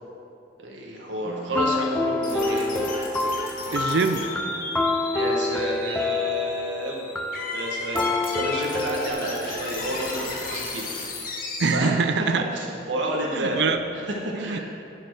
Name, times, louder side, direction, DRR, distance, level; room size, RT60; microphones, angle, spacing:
voice 1, 0.6-2.9 5.1-7.1 7.5-10.9 11.7-12.0 12.4-13.6 13.9-14.6, right 1 dB, 85° right, -2 dB, 1.4 m, -30 dB
sound 1, 1.3-9.1, left 3 dB, 5° left, 0.4 m, -27 dB
sound 2, 2.2-11.7, left 2 dB, 50° left, 1.5 m, -34 dB
voice 2, 3.7-4.2 11.6-12.4 13.3-13.8 14.3-14.6, right 5 dB, 65° right, 8 dB, 0.4 m, -23 dB
11.5 x 7.0 x 4.6 m, 3.0 s
head